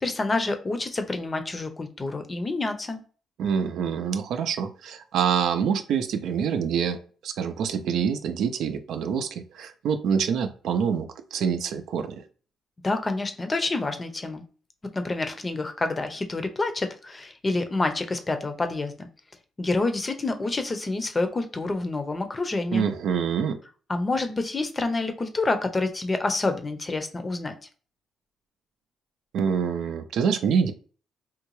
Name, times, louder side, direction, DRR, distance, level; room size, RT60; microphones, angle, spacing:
voice 1, 0.0-3.0 12.8-14.4 14.9-19.1 19.6-22.9 23.9-27.5, left 2 dB, 25° left, 7 dB, 0.6 m, -28 dB
voice 2, 3.4-12.2 22.7-23.6 29.3-30.7, right 7 dB, 75° right, 8 dB, 0.4 m, -26 dB
3.7 x 2.2 x 3.0 m, 0.39 s
cardioid pair, 90°, 0 cm